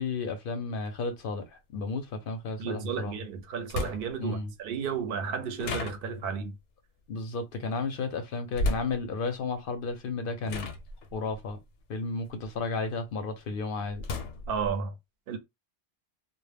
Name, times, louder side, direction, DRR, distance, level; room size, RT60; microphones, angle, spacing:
voice 1, 0.0-3.2 4.2-4.5 7.1-10.7 11.1-11.6 11.9-14.0, left 3 dB, 60° left, 0.6 m, -33 dB
sound 1, 0.9-1.0 3.0-3.1 3.7-4.3 5.6-6.4 8.5-9.0 9.9-10.1 10.5-12.8 13.3-14.8, left 2 dB, 85° left, 0.9 m, -34 dB
voice 2, 2.6-6.5 14.5-14.9 15.3-15.4, right 6 dB, 60° right, 0.7 m, -33 dB
2.1 x 2.1 x 3.3 m
omnidirectional pair, 1.2 m